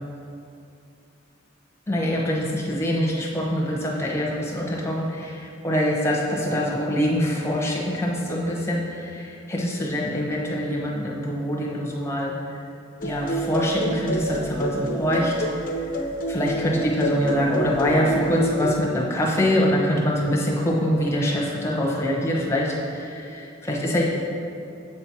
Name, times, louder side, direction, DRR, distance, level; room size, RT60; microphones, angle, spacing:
voice 1, 1.9-12.6 13.0-15.5 15.8-16.0 16.3-24.0, equal, 15° left, -4 dB, 1.0 m, -24 dB
sound 1, 13.0-18.8, right 1 dB, 40° left, 0.6 m, -28 dB
7.7 x 4.4 x 4.6 m, 2.6 s
head